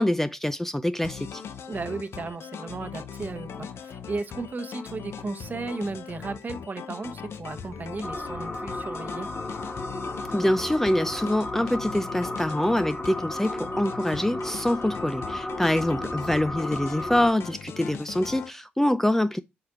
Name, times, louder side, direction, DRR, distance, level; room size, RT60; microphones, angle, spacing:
voice 1, 0.0-1.4 10.3-19.4, left 1 dB, 5° left, 0.4 m, -25 dB
sound 1, 1.0-18.5, left 7 dB, 60° left, 0.7 m, -40 dB
voice 2, 1.7-9.3, right 3 dB, 35° right, 1.0 m, -35 dB
sound 2, 8.0-17.3, left 1 dB, 35° left, 2.1 m, -34 dB
7.9 x 4.9 x 2.5 m
hypercardioid pair, 50°, 5 cm